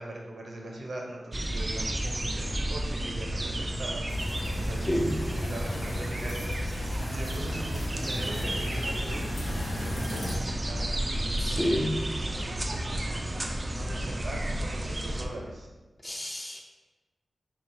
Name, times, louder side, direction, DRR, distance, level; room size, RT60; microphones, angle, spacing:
voice 1, 0.0-4.0 4.5-11.7 12.0-12.6 13.7-15.7, right 1 dB, 70° right, -1 dB, 0.7 m, -41 dB
sound 1, 1.3-15.3, right 1 dB, 30° right, 0.3 m, -32 dB
sound 2, 4.1-10.4, left 1 dB, 85° left, 0.5 m, -36 dB
voice 2, 4.9-5.2 11.4-12.0 16.0-16.6, equal, 25° left, -1 dB, 0.6 m, -29 dB
3.7 x 3.1 x 2.7 m, 1.2 s
wide cardioid pair, 95°, 0 cm